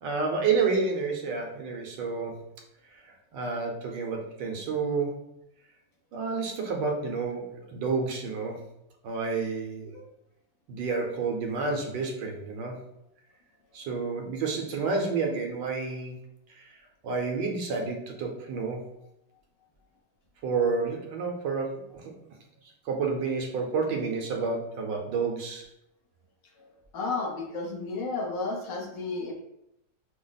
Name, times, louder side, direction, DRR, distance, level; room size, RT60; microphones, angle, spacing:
voice 1, 0.0-2.4 2.9-5.3 6.1-8.7 9.0-9.9 10.7-12.7 13.7-16.2 16.5-16.7 17.0-18.9 20.4-22.1 22.8-25.7, right 4 dB, 75° right, 1 dB, 1.5 m, -30 dB
voice 2, 26.9-29.3, left 3 dB, 75° left, 0 dB, 1.6 m, -32 dB
5.6 x 2.1 x 4.0 m, 0.81 s
omnidirectional pair, 1.9 m